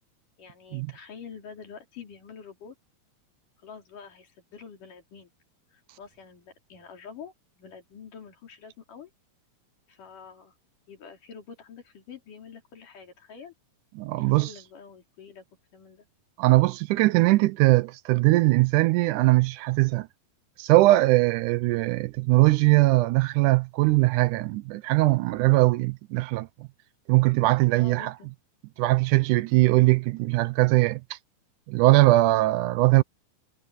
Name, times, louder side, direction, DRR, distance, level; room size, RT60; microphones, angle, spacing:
voice 1, 0.4-2.8 3.6-5.3 5.7-9.1 9.9-10.5 10.9-13.5 14.2-15.4 15.7-16.1 27.8-28.3, left 6 dB, 80° left, 5.2 m, -46 dB
voice 2, 14.0-14.5 16.4-20.1 20.6-26.7 27.1-28.1 28.8-31.2 31.7-33.0, right 20 dB, 80° right, 2.1 m, -21 dB
omnidirectional pair, 3.7 m